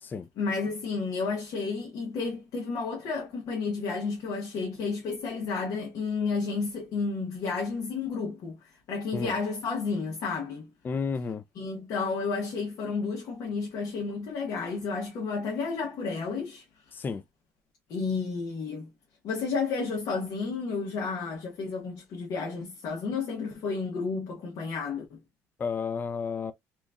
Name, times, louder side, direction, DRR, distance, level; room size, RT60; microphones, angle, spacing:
voice 1, 0.4-10.7 11.5-16.6 17.9-18.9 19.2-25.2, left 4 dB, 70° left, 1.1 m, -31 dB
voice 2, 10.8-11.4 16.9-17.2 25.6-26.5, left 5 dB, 30° left, 0.4 m, -32 dB
3.3 x 3.0 x 2.4 m
cardioid pair, 100°, 6 cm